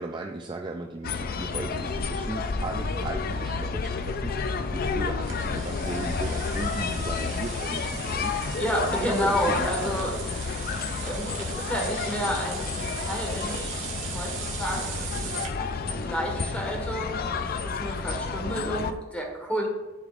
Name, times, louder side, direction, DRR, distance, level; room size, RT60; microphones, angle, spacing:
voice 1, 0.0-10.2, right 2 dB, 20° right, 3 dB, 0.3 m, -37 dB
sound 1, 1.0-18.9, left 4 dB, 45° left, 0.4 m, -31 dB
sound 2, 5.2-15.5, right 7 dB, 65° right, 1.5 m, -39 dB
voice 2, 8.5-13.6 14.0-14.3 14.6-15.3 15.6-19.7, equal, 5° left, -1 dB, 1.5 m, -31 dB
12.0 x 5.0 x 2.5 m, 1.2 s
head